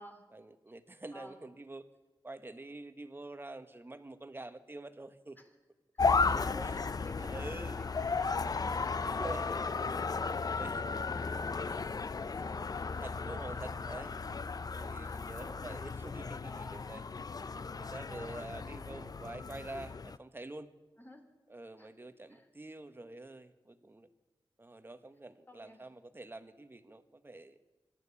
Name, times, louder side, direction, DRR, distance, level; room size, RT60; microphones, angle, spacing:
voice 1, 0.3-1.8 2.2-5.4 6.7-6.8 7.1-7.8 9.0-10.0 10.6-10.8 12.9-14.2 14.7-17.0 17.8-20.7 21.5-24.1 24.6-27.6, right 2 dB, 25° right, 10 dB, 1.4 m, -47 dB
voice 2, 1.1-1.4 5.4-5.5 5.9-9.7 10.0-12.5 13.1-13.6 15.0-15.2 15.5-16.8 18.1-19.4 21.0-21.2 21.8-22.5 25.5-25.8, left 1 dB, 20° left, 5 dB, 3.6 m, -53 dB
sound 1, 6.0-20.2, left 4 dB, 45° left, 0.6 m, -35 dB
25.5 x 12.0 x 8.6 m, 1.2 s
wide cardioid pair, 100°, 9 cm